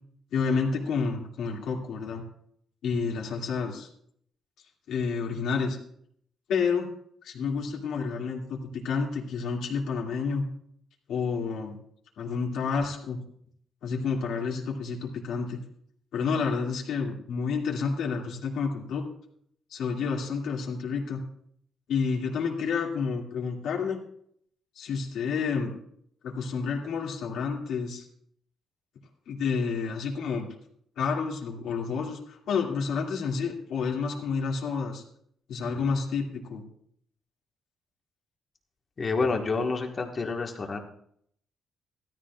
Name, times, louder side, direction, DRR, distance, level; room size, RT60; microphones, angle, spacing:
voice 1, 0.3-2.2 2.8-3.9 4.9-5.8 6.5-6.9 7.2-10.5 11.1-11.8 12.2-13.2 13.8-15.6 16.1-19.1 19.7-21.2 21.9-24.0 24.8-25.7 26.2-28.0 29.3-30.5 31.0-35.0 35.5-36.6, left 5 dB, 80° left, -1 dB, 2.2 m, -29 dB
voice 2, 39.0-40.8, left 4 dB, 35° left, 2 dB, 1.5 m, -28 dB
15.5 x 13.5 x 2.4 m, 0.67 s
cardioid pair, 135°, 0 cm